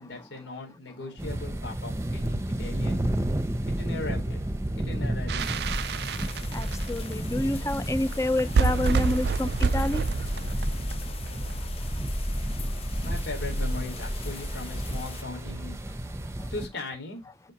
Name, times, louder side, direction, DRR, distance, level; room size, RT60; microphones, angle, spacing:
voice 1, 0.0-3.0 3.7-4.4 4.7-5.9 13.0-15.8 16.5-17.5, left 2 dB, 85° left, 4.1 m, -38 dB
sound 1, 1.2-16.7, right 1 dB, 15° right, 0.8 m, -33 dB
sound 2, 5.3-7.1 7.9-8.0 8.1-8.2 8.4-11.5, right 5 dB, 60° right, 0.4 m, -28 dB
sound 3, 5.4-15.2, equal, 30° left, 1.0 m, -34 dB
voice 2, 6.5-10.1 11.4-11.7 16.1-16.5, left 2 dB, 15° left, 0.5 m, -29 dB
10.5 x 5.3 x 2.9 m
head